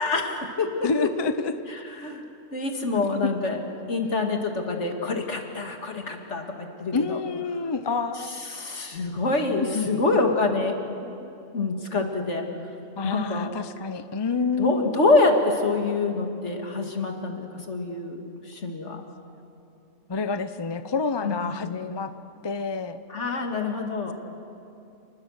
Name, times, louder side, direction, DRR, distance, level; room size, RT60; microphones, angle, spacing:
voice 1, 0.0-1.1 2.0-2.2 2.5-3.6 3.9-7.2 8.2-10.8 11.2-11.3 11.5-12.4 13.0-13.5 14.6-19.0 21.2-21.8 23.1-24.1, left 3 dB, 65° left, 3 dB, 2.4 m, -26 dB
voice 2, 0.8-1.5 2.9-3.1 6.9-8.4 9.6-10.0 13.0-15.0 20.1-22.1 22.4-23.0, left 4 dB, 25° left, 10 dB, 0.6 m, -28 dB
28.5 x 20.5 x 6.5 m, 2.8 s
omnidirectional pair, 1.3 m